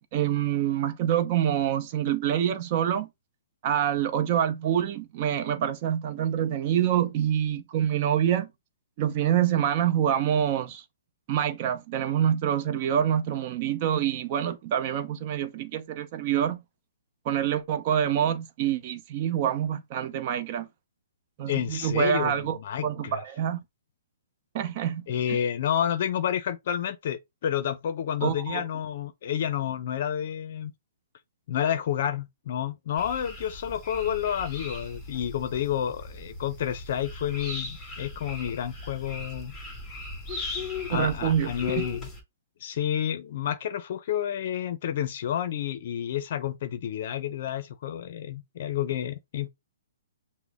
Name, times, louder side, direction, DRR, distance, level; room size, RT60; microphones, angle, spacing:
voice 1, 0.0-3.1 3.6-8.5 9.0-10.8 11.3-16.6 17.2-20.7 21.4-23.6 24.5-25.4 28.2-28.6 40.9-41.8, right 10 dB, 35° right, 0.7 m, -26 dB
voice 2, 21.5-23.2 25.1-30.7 31.5-39.5 40.9-42.1 42.6-49.5, left 9 dB, 50° left, 0.5 m, -30 dB
sound 1, 33.0-42.2, left 3 dB, 15° left, 2.0 m, -38 dB
6.0 x 2.1 x 3.5 m
hypercardioid pair, 150°, 0 cm